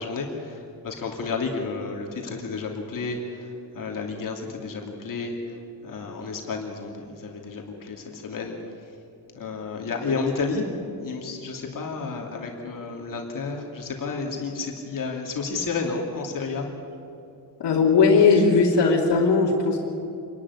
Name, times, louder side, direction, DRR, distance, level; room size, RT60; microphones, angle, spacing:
voice 1, 0.0-5.6 5.8-8.6 9.3-16.7, left 4 dB, 50° left, 1 dB, 2.8 m, -31 dB
voice 2, 17.6-19.8, left 4 dB, 80° left, -4 dB, 2.8 m, -18 dB
27.0 x 12.0 x 9.8 m, 2.7 s
wide cardioid pair, 155°, 41 cm